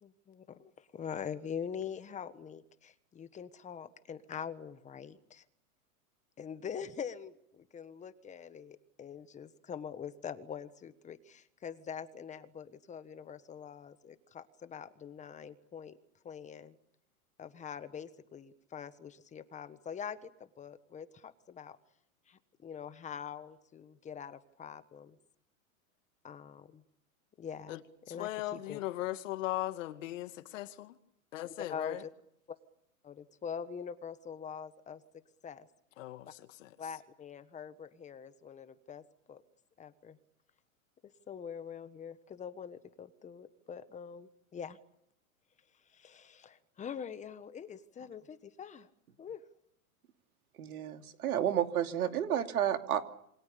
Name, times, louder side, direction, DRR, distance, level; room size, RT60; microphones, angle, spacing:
voice 1, 0.0-5.4 6.4-16.0 16.2-16.7 17.4-21.8 22.3-25.2 26.2-26.8 27.4-27.8 28.1-28.8 31.7-32.1 32.5-32.6 33.0-35.0 35.4-35.7 36.8-39.4 39.8-40.2 41.3-44.8 45.9-48.9 49.2-49.4, left 7 dB, 15° left, 1.4 m, -44 dB
voice 2, 28.1-31.0 31.3-32.0 36.0-36.8, left 15 dB, 60° left, 2.2 m, -38 dB
voice 3, 50.6-53.0, right 10 dB, 80° right, 2.9 m, -31 dB
28.0 x 25.0 x 7.0 m
hypercardioid pair, 135°, 43 cm